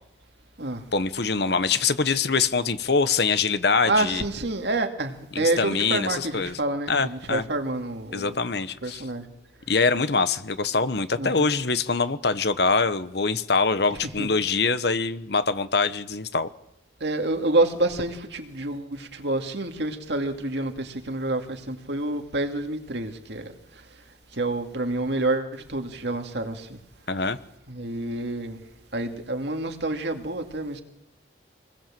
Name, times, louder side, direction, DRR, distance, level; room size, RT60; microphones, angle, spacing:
voice 1, 0.9-4.2 5.3-6.6 6.9-7.4 8.1-9.0 9.7-16.5 27.1-27.4, left 4 dB, 60° left, 1.1 m, -24 dB
voice 2, 3.8-8.4 8.8-9.3 11.2-11.5 14.2-14.3 17.0-23.5 24.3-26.8 27.7-28.6 28.9-30.8, right 2 dB, 65° right, 2.4 m, -28 dB
25.5 x 20.0 x 7.6 m
head